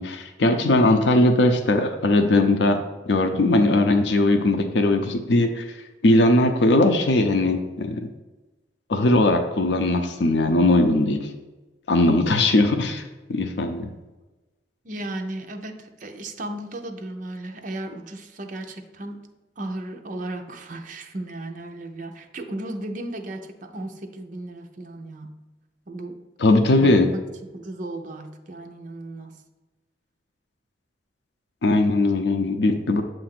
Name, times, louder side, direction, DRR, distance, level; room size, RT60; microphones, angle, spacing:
voice 1, 0.0-2.8 3.1-5.7 6.0-8.1 8.9-11.3 11.9-13.0 13.3-13.9 26.4-27.1 31.6-33.0, left 2 dB, 75° left, 6 dB, 0.5 m, -19 dB
voice 2, 14.8-19.3 19.6-25.4 25.9-26.2 26.8-27.2 27.5-29.4, right 1 dB, 45° right, 4 dB, 0.6 m, -35 dB
7.6 x 2.5 x 5.7 m, 1.1 s
head